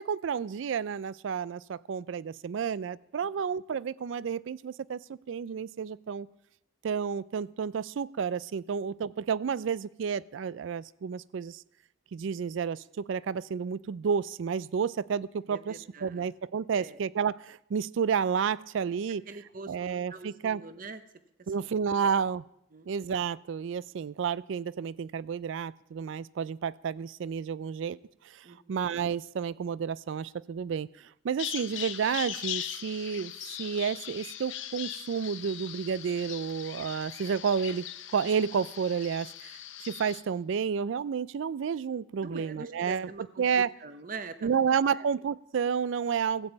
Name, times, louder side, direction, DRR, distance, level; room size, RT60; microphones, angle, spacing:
voice 1, 0.0-6.3 6.8-11.6 12.1-19.2 19.7-20.6 21.5-22.5 22.9-28.0 28.2-39.5 39.8-43.1 43.4-43.7 44.4-46.5, right 6 dB, 65° right, 20 dB, 0.3 m, -31 dB
voice 2, 15.5-16.3 16.7-17.0 19.3-19.7 20.1-21.0 21.6-21.7 22.7-22.9 28.4-28.8 42.2-43.5 43.8-44.7, right 3 dB, 40° right, 10 dB, 0.8 m, -43 dB
Bird vocalization bird call bird song, 31.4-40.2, left 11 dB, 65° left, 0.7 m, -40 dB
15.5 x 5.4 x 8.0 m, 0.78 s
head